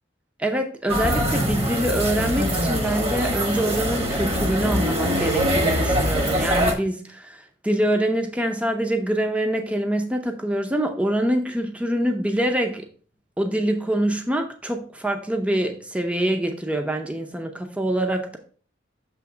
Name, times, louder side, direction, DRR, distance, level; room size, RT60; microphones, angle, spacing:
voice 1, 0.4-7.1 7.3-12.9 13.4-18.4, right 1 dB, 5° right, 4 dB, 0.6 m, -25 dB
sound 1, 0.9-6.7, equal, 35° right, 1.1 m, -23 dB
6.9 x 3.1 x 4.9 m, 0.42 s
head